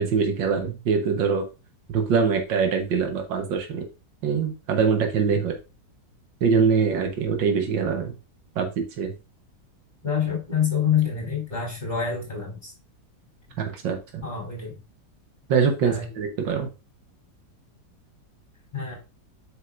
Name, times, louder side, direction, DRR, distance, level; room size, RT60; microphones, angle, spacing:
voice 1, 0.0-1.4 1.9-3.8 4.2-5.6 6.4-8.1 8.6-9.1 13.7-14.2 15.5-16.7, right 6 dB, 85° right, 4 dB, 1.9 m, -23 dB
voice 2, 10.0-12.7 14.2-14.7 15.8-16.1 18.7-19.0, left 7 dB, 25° left, -4 dB, 3.9 m, -26 dB
7.8 x 6.5 x 2.5 m, 0.29 s
omnidirectional pair, 1.9 m